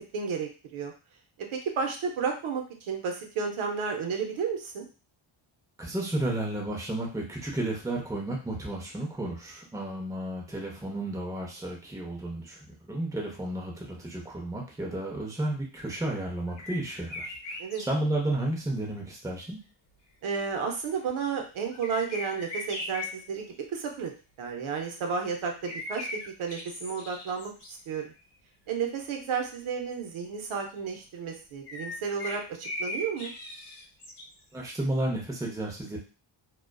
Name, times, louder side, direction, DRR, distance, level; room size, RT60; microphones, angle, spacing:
voice 1, 0.1-0.9 1.5-4.8 17.6-17.8 20.2-24.1 24.4-26.1 26.4-27.5 27.9-28.0 28.7-33.3, right 6 dB, 75° right, 3 dB, 0.7 m, -32 dB
voice 2, 5.8-19.6 34.5-36.0, right 1 dB, 5° right, -2 dB, 0.6 m, -32 dB
sound 1, 16.5-17.9 21.7-23.1 25.6-27.7 28.3-28.4 29.0-29.1 29.2-29.3 31.7-34.3, left 2 dB, 55° left, 0.9 m, -38 dB
2.4 x 2.3 x 2.2 m, 0.34 s
wide cardioid pair, 120°, 49 cm